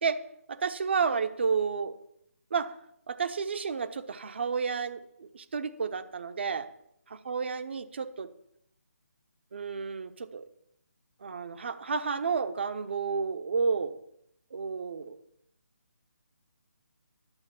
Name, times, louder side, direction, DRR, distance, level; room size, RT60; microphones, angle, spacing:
voice 1, 0.5-1.9 2.5-2.7 3.1-6.7 7.2-8.3 9.5-10.4 11.2-14.0 14.5-15.2, right 5 dB, 45° right, 10 dB, 1.2 m, -31 dB
12.0 x 7.7 x 7.5 m, 0.74 s
figure-of-eight pair, 145°, 8 cm